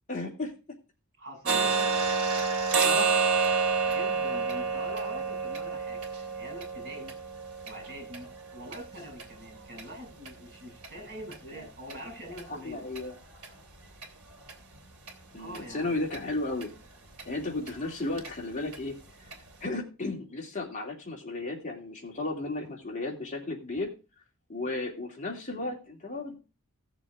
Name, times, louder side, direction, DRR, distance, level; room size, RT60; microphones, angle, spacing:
voice 1, 0.1-0.5 2.8-3.3 11.5-11.7 12.5-13.1 15.3-16.7 17.2-19.0 19.2-19.3 19.6-23.9 24.5-26.4, left 2 dB, 35° left, -1 dB, 2.8 m, -34 dB
voice 2, 1.2-2.1 3.9-7.2 7.6-12.9 15.4-16.0, equal, 40° right, 1 dB, 8.0 m, -44 dB
sound 1, 1.5-9.3 9.7-9.8 10.3-10.4 10.8-10.9 11.3-11.4 11.9-12.0 12.4-12.5 12.9-13.0 13.4-13.5 14.0-14.1 14.5-14.6 15.1-15.2 15.5-15.6 16.1-16.2 16.6-16.7 17.2-17.3 17.7-17.8 18.2-18.3 18.7-18.8 19.3-19.4, right 5 dB, 85° right, 2.5 m, -29 dB
15.5 x 6.7 x 3.7 m, 0.31 s
head